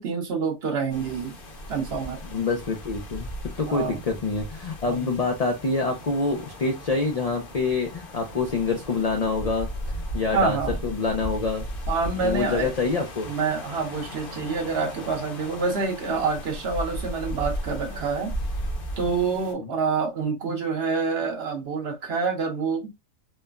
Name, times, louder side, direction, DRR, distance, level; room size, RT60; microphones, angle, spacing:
voice 1, 0.0-1.3 1.7-2.2 3.7-4.0 4.8-5.1 10.3-10.8 11.9-12.7 13.3-18.3 19.0-22.9, right 5 dB, 55° right, 1.0 m, -27 dB
sound 1, 0.9-19.5, equal, 50° left, 0.8 m, -36 dB
voice 2, 2.3-3.3 3.6-11.6 12.2-13.3 19.6-19.7, left 3 dB, 85° left, 0.3 m, -26 dB
3.2 x 2.1 x 2.3 m
omnidirectional pair, 1.4 m